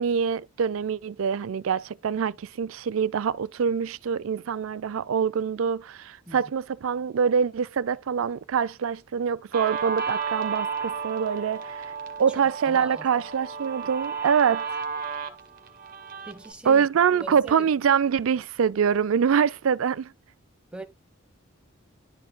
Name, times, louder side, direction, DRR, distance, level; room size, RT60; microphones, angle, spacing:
voice 1, 0.0-11.9 12.2-14.6 16.7-20.1, right 7 dB, 85° right, 0.4 m, -25 dB
Guitar, 9.5-16.5, right 5 dB, 45° right, 1.5 m, -33 dB
voice 2, 12.3-13.1 16.2-16.9 17.2-17.7 20.7-20.8, right 2 dB, 5° right, 1.2 m, -41 dB
11.5 x 4.5 x 2.3 m
head